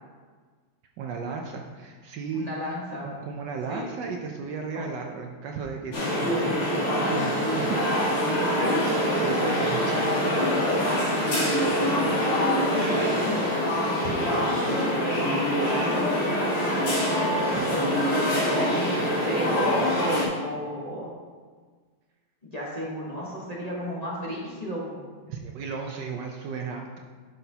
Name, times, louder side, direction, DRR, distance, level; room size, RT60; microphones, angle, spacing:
voice 1, 1.0-2.5 3.0-7.8 9.2-10.4 13.7-14.5 17.4-17.8 25.3-27.0, right 5 dB, 70° right, 2 dB, 1.2 m, -35 dB
voice 2, 2.3-3.1 3.7-3.9 4.7-4.9 8.4-11.3 11.9-13.3 15.8-16.7 17.9-21.1 22.4-25.0, equal, 25° left, -6 dB, 1.1 m, -33 dB
sound 1, 5.9-20.3, equal, 50° left, 2.3 m, -25 dB
10.5 x 5.9 x 2.8 m, 1.5 s
omnidirectional pair, 2.2 m